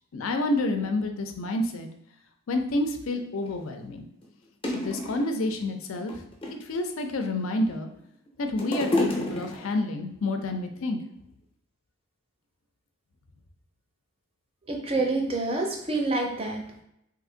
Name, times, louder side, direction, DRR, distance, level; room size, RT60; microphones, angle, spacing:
voice 1, 0.1-1.9 2.5-4.0 4.7-6.1 6.7-7.9 8.4-11.0, left 2 dB, 75° left, 6 dB, 0.5 m, -29 dB
sound 1, 3.4-3.5 4.2-4.3 4.6-5.5 6.0-6.7 7.4-8.0 8.3-9.9 10.7-10.8, left 1 dB, 25° left, 0.5 m, -30 dB
voice 2, 14.7-16.8, right 2 dB, 25° right, 2 dB, 0.5 m, -27 dB
2.8 x 2.5 x 3.8 m, 0.76 s
head